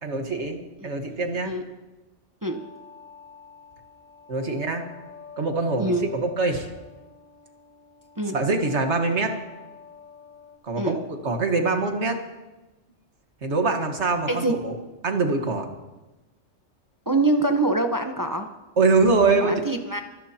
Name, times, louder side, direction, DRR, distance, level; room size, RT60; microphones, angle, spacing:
voice 1, 0.0-1.5 4.3-4.8 5.4-6.7 8.3-9.3 10.6-12.2 13.4-14.8 15.0-15.7 18.8-19.5, right 3 dB, 70° right, 4 dB, 1.9 m, -24 dB
sound 1, 2.4-10.6, left 6 dB, 45° left, 1.6 m, -47 dB
voice 2, 5.8-6.1 8.2-8.4 10.8-10.9 14.3-14.5 17.1-18.5 19.3-20.0, right 2 dB, 20° right, 4 dB, 0.9 m, -24 dB
24.5 x 15.5 x 2.9 m, 1.1 s
omnidirectional pair, 1.2 m